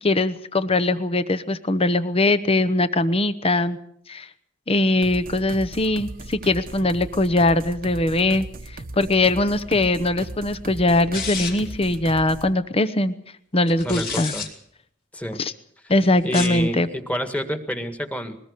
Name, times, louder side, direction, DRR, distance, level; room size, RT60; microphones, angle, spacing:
voice 1, 0.0-3.8 4.1-4.3 4.7-13.1 13.5-14.3 15.4-15.5 15.9-16.9, left 2 dB, 30° left, 12 dB, 0.9 m, -21 dB
sound 1, 5.0-12.5, right 2 dB, 50° right, 1.0 m, -38 dB
sound 2, 11.1-11.8 13.7-14.5 16.2-16.6, left 5 dB, 50° left, 3.3 m, -30 dB
voice 2, 13.8-14.5 15.1-15.4 16.2-18.4, equal, 5° left, 7 dB, 1.8 m, -29 dB
21.5 x 19.0 x 6.7 m, 0.68 s
head